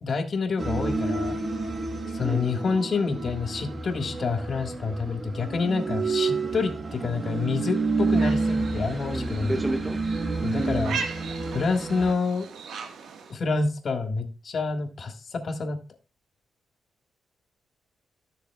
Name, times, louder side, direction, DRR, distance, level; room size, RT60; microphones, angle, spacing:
voice 1, 0.0-1.4 2.1-9.6 10.4-11.0 11.5-12.5 13.3-15.8, left 4 dB, 45° left, 5 dB, 1.5 m, -28 dB
sound 1, 0.6-12.1, right 3 dB, 35° right, 1.3 m, -29 dB
sound 2, 8.1-13.4, right 6 dB, 80° right, 1.4 m, -39 dB
voice 2, 9.0-10.2 10.5-11.0, right 1 dB, 10° right, 7 dB, 0.6 m, -31 dB
13.5 x 6.6 x 2.2 m, 0.31 s
cardioid pair, 115°, 0 cm